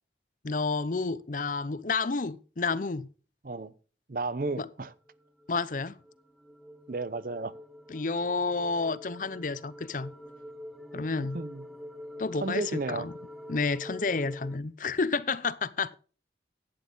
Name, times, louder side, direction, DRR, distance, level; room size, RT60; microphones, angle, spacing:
voice 1, 0.4-3.1 4.6-4.7 5.5-6.0 7.9-10.1 10.9-11.4 12.2-13.1 13.5-16.0, left 4 dB, 50° left, 0.6 m, -30 dB
voice 2, 4.1-4.9 6.9-7.5 11.2-11.7 12.4-13.1, right 3 dB, 50° right, 0.7 m, -33 dB
sound 1, 4.9-14.6, left 1 dB, ahead, 0.6 m, -45 dB
12.0 x 9.4 x 3.9 m
head